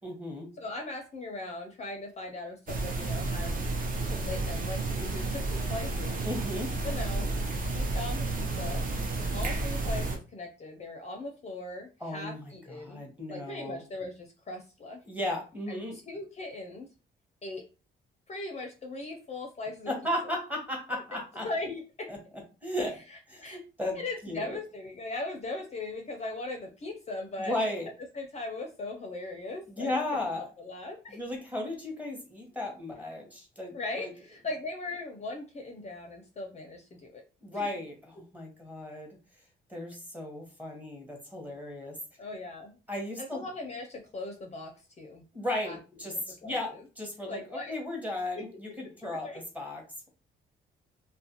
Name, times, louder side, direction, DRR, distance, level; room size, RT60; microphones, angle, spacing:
voice 1, 0.0-0.5 6.2-6.7 12.0-12.5 12.8-13.8 15.0-16.0 19.9-21.5 22.1-22.2 22.6-23.0 23.3-24.0 24.2-24.6 27.4-27.9 29.7-30.5 31.1-34.1 37.4-39.2 39.7-42.0 42.9-43.4 45.3-49.8, left 1 dB, 10° right, 0 dB, 1.0 m, -35 dB
voice 2, 0.6-3.6 4.1-6.2 6.8-7.3 7.7-8.9 9.3-13.0 13.3-15.0 15.7-16.9 17.4-17.6 18.3-19.9 20.2-20.3 21.1-22.1 23.1-23.6 23.9-27.5 28.1-31.2 33.7-37.2 37.5-37.7 42.2-42.8 43.2-45.2 45.6-45.8 46.4-46.8 47.3-47.7 48.4-48.5 49.1-49.4, left 2 dB, 35° left, 3 dB, 0.5 m, -39 dB
sound 1, 2.7-10.2, right 2 dB, 45° right, 0.6 m, -31 dB
2.4 x 2.1 x 2.8 m, 0.33 s
cardioid pair, 90°, 20 cm